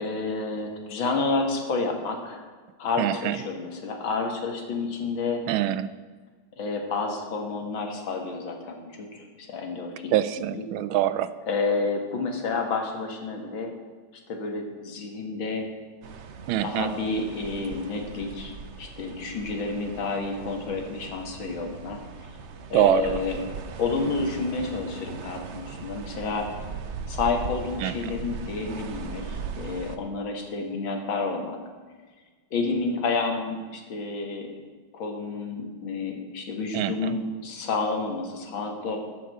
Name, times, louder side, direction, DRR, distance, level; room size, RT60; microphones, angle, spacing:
voice 1, 0.0-2.4 2.8-5.4 6.6-10.2 10.5-10.7 11.5-13.7 14.3-15.7 16.6-22.0 22.7-23.4 23.8-26.5 27.1-31.6 32.5-34.5 34.9-39.0, left 4 dB, 75° left, 3 dB, 2.4 m, -30 dB
voice 2, 3.0-3.4 5.5-5.9 10.1-11.3 16.5-16.9 22.7-23.2 27.8-28.2 36.7-37.1, right 12 dB, 85° right, 14 dB, 1.4 m, -24 dB
sound 1, 16.0-30.0, right 5 dB, 65° right, 0.7 m, -39 dB
13.5 x 5.8 x 7.6 m, 1.4 s
omnidirectional pair, 2.2 m